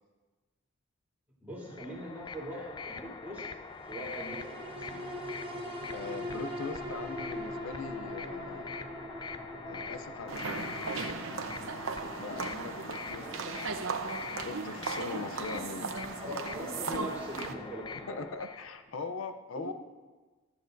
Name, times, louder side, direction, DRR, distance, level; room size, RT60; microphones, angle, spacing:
voice 1, 1.4-3.4 3.9-5.0 13.1-13.7 16.2-18.3 19.5-19.6, equal, 10° right, -6 dB, 3.2 m, -42 dB
sound 1, 1.6-18.7, left 4 dB, 20° left, 0.4 m, -44 dB
sound 2, 3.8-18.4 18.9-19.0, equal, 25° right, 1.0 m, -43 dB
voice 2, 5.9-8.8 9.6-10.7 12.2-13.6 14.4-15.9 18.1-19.7, left 4 dB, 85° left, 8 dB, 0.6 m, -41 dB
sound 3, 10.3-17.5, right 4 dB, 80° right, 0.8 m, -37 dB
14.5 x 13.0 x 2.6 m, 1.3 s
head